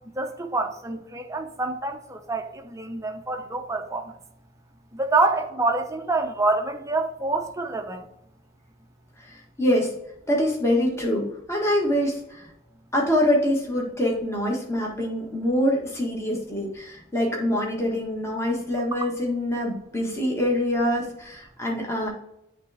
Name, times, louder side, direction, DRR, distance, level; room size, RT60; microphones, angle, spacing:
voice 1, 0.2-4.0 4.9-8.0, right 3 dB, 15° right, 4 dB, 0.7 m, -26 dB
voice 2, 9.2-9.9 10.3-12.4 12.9-22.1, left 1 dB, 15° left, -2 dB, 1.4 m, -25 dB
9.3 x 3.3 x 3.4 m, 0.82 s
head